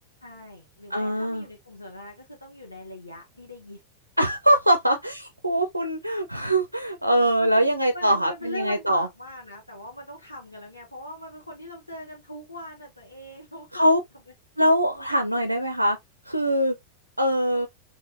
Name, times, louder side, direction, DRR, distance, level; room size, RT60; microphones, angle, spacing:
voice 1, 0.2-3.8 7.4-13.9, left 1 dB, 85° left, 1.1 m, -41 dB
voice 2, 0.9-1.4 4.2-9.1 13.7-14.0 14.6-16.0 16.3-16.7 17.2-17.7, equal, 85° right, 0.5 m, -22 dB
3.8 x 2.7 x 2.7 m
figure-of-eight pair, 90°, 0 cm